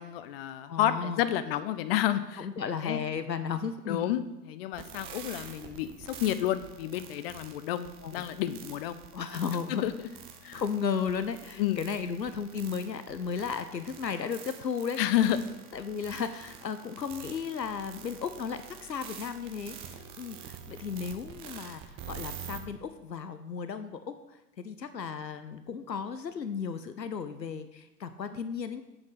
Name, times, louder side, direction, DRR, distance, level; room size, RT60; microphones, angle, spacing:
voice 1, 0.0-2.5 2.7-3.0 3.9-9.0 9.7-9.9 10.4-10.6 11.6-11.8 15.0-15.4, left 12 dB, 40° left, 13 dB, 0.6 m, -30 dB
voice 2, 0.7-1.2 2.4-4.0 8.0-8.3 9.1-9.8 10.5-15.0 15.7-28.8, left 6 dB, 90° left, 10 dB, 0.7 m, -35 dB
sound 1, 4.7-22.6, right 8 dB, 10° right, 0.4 m, -47 dB
7.8 x 7.3 x 5.7 m, 0.98 s
figure-of-eight pair, 95°, 49 cm